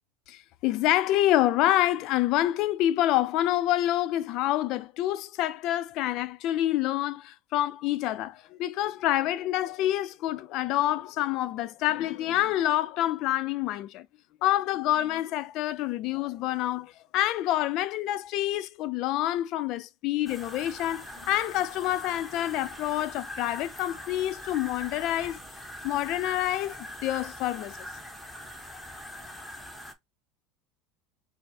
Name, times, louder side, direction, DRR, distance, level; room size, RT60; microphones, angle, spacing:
voice 1, 0.3-14.1 14.4-25.4 25.8-27.8, left 14 dB, 60° left, 0.5 m, -27 dB
sound 1, 20.3-29.9, left 1 dB, 5° left, 1.0 m, -42 dB
4.6 x 2.1 x 4.1 m
supercardioid pair, 105°, 0 cm